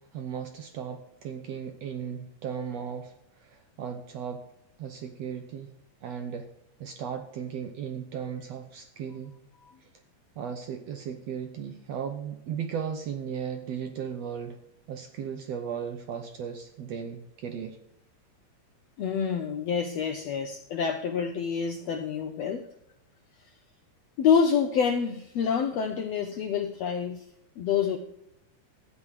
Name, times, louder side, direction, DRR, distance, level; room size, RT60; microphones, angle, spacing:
voice 1, 0.1-4.4 4.8-5.7 6.0-6.5 6.8-9.4 9.8-9.9 10.4-14.6 14.9-17.8, right 7 dB, 70° right, 6 dB, 1.6 m, -36 dB
voice 2, 19.0-22.7 24.2-27.2 27.6-28.0, left 6 dB, 80° left, 7 dB, 1.5 m, -27 dB
12.5 x 8.5 x 4.8 m, 0.77 s
omnidirectional pair, 3.9 m